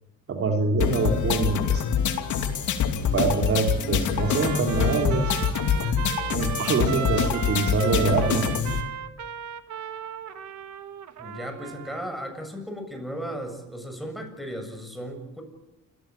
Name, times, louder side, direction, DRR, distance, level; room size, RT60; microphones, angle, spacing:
voice 1, 0.3-1.8 3.1-5.3 6.3-8.4, right 4 dB, 50° right, 3 dB, 3.0 m, -25 dB
sound 1, 0.8-8.8, left 7 dB, 70° left, 2.8 m, -25 dB
Trumpet, 4.2-12.3, right 9 dB, 70° right, 1.6 m, -35 dB
voice 2, 11.2-15.4, equal, ahead, 5 dB, 7.4 m, -36 dB
28.0 x 16.5 x 9.0 m, 0.96 s
cardioid pair, 80°, 30 cm